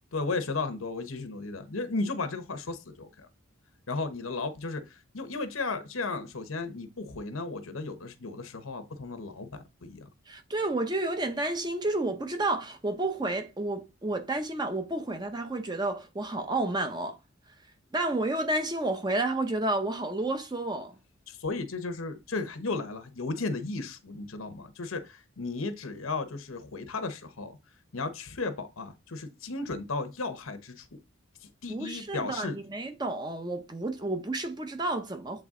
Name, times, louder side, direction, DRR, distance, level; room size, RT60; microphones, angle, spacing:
voice 1, 0.1-3.3 3.9-10.0 21.3-27.6 27.9-30.9 31.6-32.6, left 3 dB, 80° left, 1.0 m, -34 dB
voice 2, 10.3-17.2 17.9-20.9 31.7-35.4, right 2 dB, 20° right, 0.7 m, -30 dB
7.8 x 3.3 x 3.7 m
head